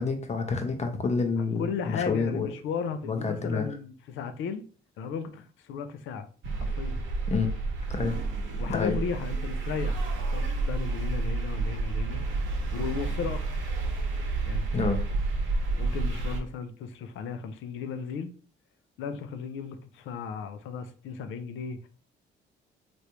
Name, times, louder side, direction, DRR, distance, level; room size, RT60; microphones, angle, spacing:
voice 1, 0.0-2.5 3.1-3.7 7.3-7.5 7.9-8.2 8.7-9.0 14.7-15.0, left 4 dB, 35° left, 0.7 m, -28 dB
voice 2, 1.6-4.6 5.0-6.3 6.6-7.1 8.6-10.0 10.3-12.2 12.7-13.5 14.5-15.0 15.8-18.3 19.0-21.9, left 6 dB, 80° left, 0.5 m, -35 dB
sound 1, 6.4-16.4, right 3 dB, 75° right, 0.9 m, -30 dB
3.3 x 2.6 x 2.9 m
cardioid pair, 90°, 20 cm